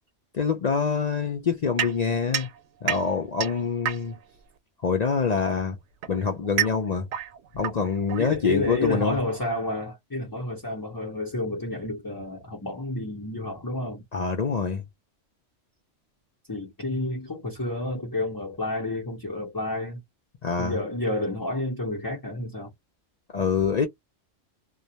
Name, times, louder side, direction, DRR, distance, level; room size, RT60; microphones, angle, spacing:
voice 1, 0.3-2.5 2.8-4.2 4.8-5.8 6.1-7.1 7.5-9.2 14.1-14.8 20.4-20.8 23.3-23.9, left 5 dB, 55° left, 0.4 m, -25 dB
sound 1, 1.8-4.4 5.4-8.8, right 10 dB, 70° right, 0.8 m, -31 dB
voice 2, 8.2-14.0 16.5-20.0 20.6-22.7, left 2 dB, 20° left, 0.7 m, -30 dB
2.3 x 2.1 x 2.7 m
omnidirectional pair, 1.3 m